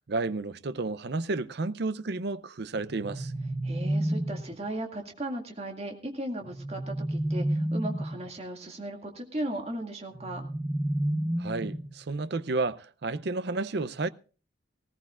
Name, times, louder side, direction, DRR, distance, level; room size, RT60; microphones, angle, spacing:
voice 1, 0.1-3.3 11.4-14.1, right 3 dB, 60° right, 0.6 m, -31 dB
sound 1, 2.8-4.6 6.4-8.3 10.1-12.1, right 1 dB, 20° right, 0.7 m, -31 dB
voice 2, 3.6-10.4, right 1 dB, 35° right, 2.1 m, -36 dB
19.0 x 16.5 x 2.4 m
head